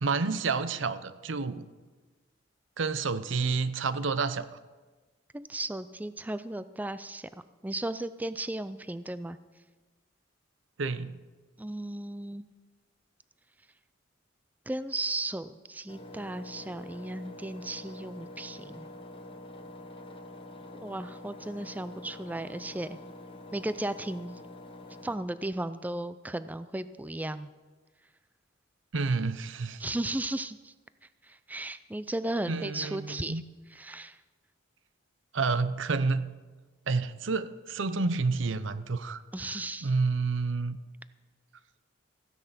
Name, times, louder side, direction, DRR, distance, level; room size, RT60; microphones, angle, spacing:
voice 1, 0.0-1.7 2.8-4.5 10.8-11.2 28.9-29.8 32.5-33.4 35.3-36.3 36.9-39.2 39.8-40.8, right 4 dB, 70° right, 13 dB, 0.7 m, -29 dB
voice 2, 5.3-7.3 7.6-9.4 11.6-12.4 14.7-18.9 20.8-23.0 23.5-24.4 25.0-27.5 29.8-30.7 31.2-33.4 33.7-34.2 39.3-39.9, right 1 dB, 10° right, 13 dB, 0.3 m, -35 dB
Engine, 15.9-25.2, left 2 dB, 25° left, 1.1 m, -46 dB
15.0 x 9.9 x 5.8 m, 1.3 s
head